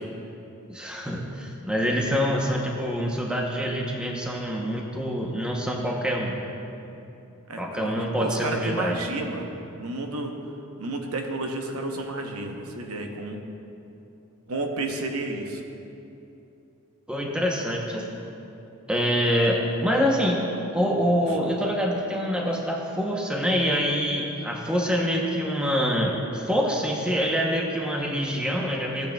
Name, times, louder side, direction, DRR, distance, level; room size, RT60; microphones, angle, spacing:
voice 1, 0.7-6.4 7.6-9.0 17.1-18.0 18.9-20.4 20.7-29.1, equal, 5° right, -1 dB, 0.8 m, -25 dB
voice 2, 7.5-9.5 9.8-10.4 10.8-13.4 14.5-15.6, right 2 dB, 80° right, 3 dB, 0.9 m, -31 dB
16.0 x 8.9 x 2.3 m, 2.8 s
head